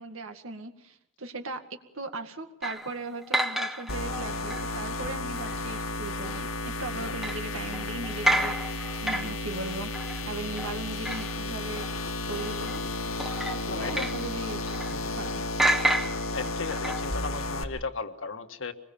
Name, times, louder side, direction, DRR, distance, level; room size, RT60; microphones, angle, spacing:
voice 1, 0.0-11.9 12.3-12.8 13.5-15.5, right 2 dB, 75° right, 6 dB, 2.1 m, -38 dB
sound 1, 2.6-4.8 5.4-5.8 6.2-6.4 7.2-11.5 11.8-11.9 12.3-12.8 13.2-15.3 15.6-17.1, right 1 dB, ahead, 1.0 m, -31 dB
sound 2, 3.9-17.6, left 2 dB, 85° left, 2.1 m, -33 dB
voice 2, 13.7-14.1 14.9-15.2 16.3-18.7, left 4 dB, 65° left, 7 dB, 1.7 m, -36 dB
26.0 x 21.0 x 7.1 m, 0.75 s
head